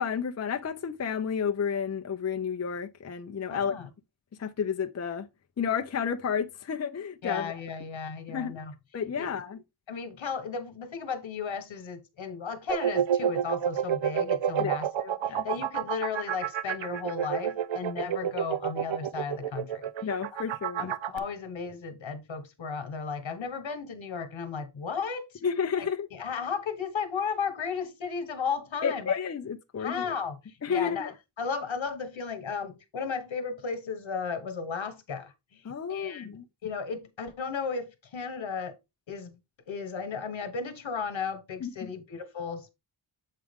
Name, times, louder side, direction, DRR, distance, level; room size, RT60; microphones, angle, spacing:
voice 1, 0.0-3.8 4.4-5.3 5.6-7.5 8.3-8.5 8.9-9.6 14.6-14.7 15.3-15.5 20.0-20.9 25.4-26.1 28.8-30.0 30.6-31.1 35.6-36.4 41.6-41.9, left 7 dB, 35° left, 0.5 m, -31 dB
voice 2, 3.5-3.9 7.2-8.7 9.1-9.3 9.9-19.9 20.3-20.4 20.8-25.3 25.8-29.2 29.8-35.6 35.9-36.3 36.6-38.8 39.1-39.3 39.7-42.7, left 5 dB, 70° left, 1.4 m, -35 dB
sound 1, 12.7-21.2, right 9 dB, 70° right, 0.6 m, -29 dB
7.4 x 4.8 x 3.6 m
wide cardioid pair, 135°, 48 cm